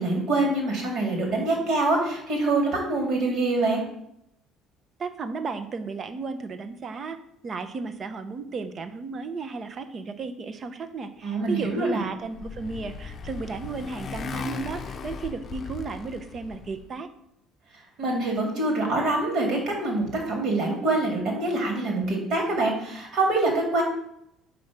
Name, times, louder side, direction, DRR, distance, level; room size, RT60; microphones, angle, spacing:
voice 1, 0.0-3.8 11.2-12.0 18.0-23.8, right 2 dB, 55° right, 2 dB, 2.1 m, -25 dB
voice 2, 5.0-7.2 7.4-17.1, right 4 dB, 40° right, 10 dB, 0.8 m, -34 dB
Motorcycle, 11.9-16.9, left 5 dB, 40° left, 0.6 m, -37 dB
5.2 x 5.2 x 5.9 m, 0.76 s
figure-of-eight pair, 55°, 0 cm